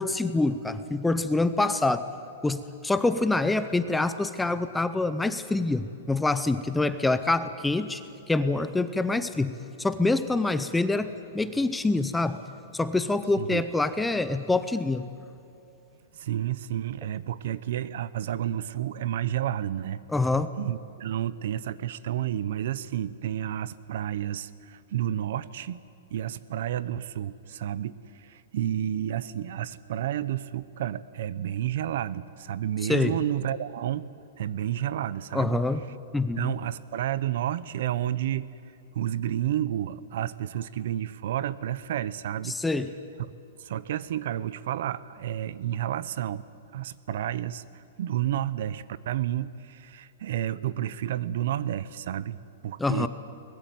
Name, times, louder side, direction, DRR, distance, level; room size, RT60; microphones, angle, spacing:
voice 1, 0.0-2.1 2.4-8.0 8.3-12.4 12.7-15.1 20.1-20.5 32.9-33.1 35.3-35.8 36.1-36.6 42.5-42.9 52.8-53.1, left 2 dB, 5° left, 11 dB, 0.6 m, -26 dB
voice 2, 16.1-20.0 20.6-25.8 26.1-34.1 34.4-35.6 36.4-38.5 38.9-42.6 43.6-46.4 46.7-53.1, right 11 dB, 50° right, 18 dB, 0.8 m, -31 dB
23.0 x 20.5 x 9.3 m, 2.7 s
supercardioid pair, 175°, 0 cm